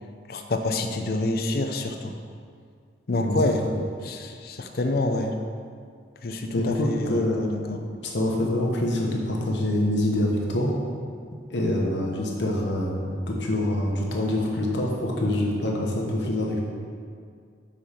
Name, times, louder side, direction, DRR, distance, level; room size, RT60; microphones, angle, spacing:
voice 1, 0.3-2.1 3.1-3.6 4.0-5.3 6.2-7.2 7.7-7.8, left 2 dB, 55° left, 5 dB, 0.5 m, -27 dB
voice 2, 3.1-3.8 6.5-10.8 11.5-16.6, left 1 dB, 75° left, -1 dB, 1.0 m, -26 dB
5.6 x 4.2 x 4.9 m, 2.2 s
head